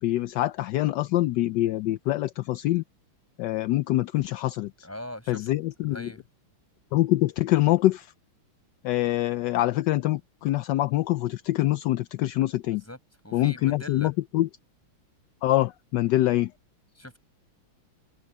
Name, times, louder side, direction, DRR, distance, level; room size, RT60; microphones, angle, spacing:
voice 1, 0.0-2.8 3.4-4.7 5.3-6.1 6.9-8.1 8.8-12.8 13.3-14.5 15.4-16.5, left 16 dB, 75° left, 1.0 m, -25 dB
voice 2, 4.8-5.5 5.9-6.2 12.6-13.0 13.2-14.1 16.9-17.2, left 1 dB, 5° left, 6.6 m, -41 dB
omnidirectional pair, 2.3 m